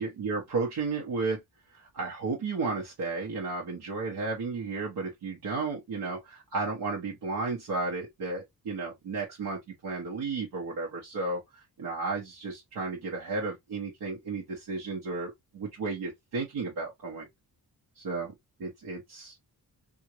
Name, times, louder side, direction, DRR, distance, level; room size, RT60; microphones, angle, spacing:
voice 1, 0.0-1.4 1.7-11.4 11.8-17.3 18.0-18.3 18.6-19.3, right 3 dB, 75° right, 1.2 m, -33 dB
3.6 x 2.5 x 3.0 m
cardioid pair, 80°, 39 cm